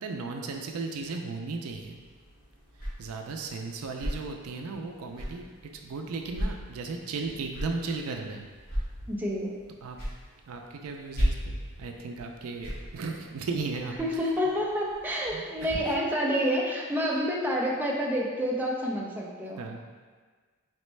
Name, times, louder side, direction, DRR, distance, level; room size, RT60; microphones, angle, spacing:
voice 1, 0.0-2.0 3.0-5.4 5.8-8.4 9.8-10.0 10.5-14.3 15.3-15.7 19.6-19.8, right 4 dB, 75° right, 3 dB, 0.4 m, -36 dB
sound 1, 1.7-15.7, equal, 45° left, 1.4 m, -37 dB
voice 2, 9.1-9.6 14.0-19.7, equal, 10° right, -3 dB, 0.5 m, -28 dB
4.2 x 3.2 x 3.1 m, 1.5 s
head